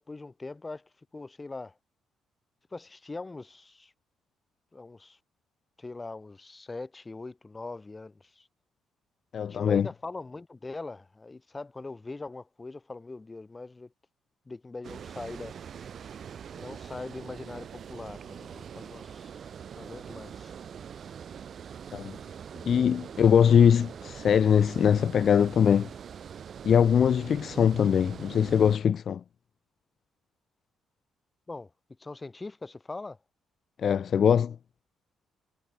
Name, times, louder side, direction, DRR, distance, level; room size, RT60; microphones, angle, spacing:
voice 1, 0.0-1.7 2.7-3.9 4.7-5.2 5.8-8.5 9.5-13.9 14.5-15.5 16.5-19.4 19.8-20.5 31.5-31.7 32.0-33.2, left 3 dB, 20° left, 3.1 m, -41 dB
voice 2, 9.3-9.9 21.9-22.2 22.6-25.9 26.6-29.2 33.8-34.6, left 8 dB, 55° left, 2.4 m, -22 dB
Water, 14.8-28.8, right 8 dB, 55° right, 3.7 m, -43 dB
cardioid pair, 90°, 0 cm